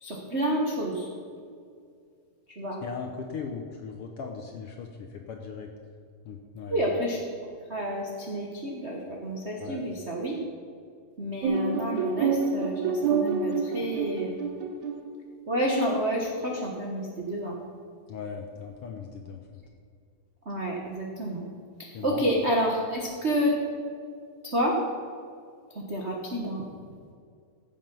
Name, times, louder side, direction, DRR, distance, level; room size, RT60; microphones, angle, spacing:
voice 1, 0.0-1.1 2.6-2.8 6.7-7.2 7.7-10.4 11.2-14.3 15.5-17.6 20.4-21.5 21.8-23.5 24.5-24.8 25.7-26.6, equal, 60° right, -2 dB, 0.6 m, -29 dB
voice 2, 2.8-5.7 6.2-6.8 9.6-9.8 18.1-19.6 21.9-22.3, left 5 dB, 70° left, 3 dB, 1.4 m, -38 dB
sound 1, 11.4-15.1, right 5 dB, 85° right, 2.2 m, -27 dB
15.0 x 7.5 x 5.3 m, 2.3 s
omnidirectional pair, 3.4 m